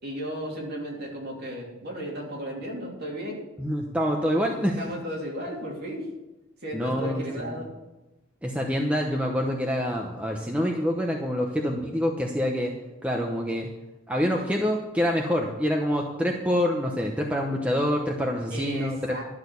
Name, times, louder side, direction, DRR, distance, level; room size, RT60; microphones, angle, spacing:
voice 1, 0.0-3.4 4.8-6.1 6.6-7.7 18.5-19.2, equal, 45° right, -2 dB, 3.0 m, -34 dB
voice 2, 3.6-4.8 6.7-7.6 8.4-12.7 13.0-13.7 14.1-19.0, equal, 5° right, 0 dB, 0.8 m, -26 dB
12.0 x 6.4 x 8.2 m, 1.0 s
head